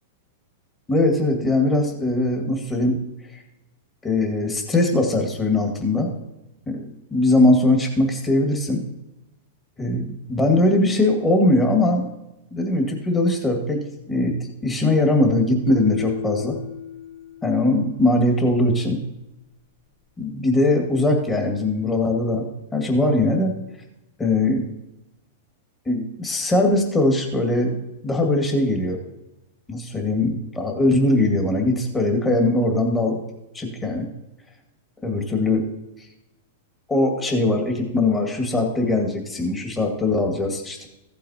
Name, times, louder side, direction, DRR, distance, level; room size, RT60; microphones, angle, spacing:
voice 1, 0.9-3.0 3.3-3.4 4.0-6.1 6.7-6.8 7.1-8.8 9.8-12.1 12.5-13.8 14.1-14.4 14.6-16.6 17.4-19.0 20.2-22.4 22.7-23.6 24.2-24.6 25.9-27.8 28.0-29.0 29.7-33.2 33.5-34.1 35.0-35.6 36.9-40.9, left 2 dB, 15° left, 2 dB, 2.1 m, -20 dB
sound 1, 15.7-17.8, left 7 dB, 35° left, 3.9 m, -32 dB
15.0 x 8.4 x 2.9 m, 0.90 s
hypercardioid pair, 130°, 0 cm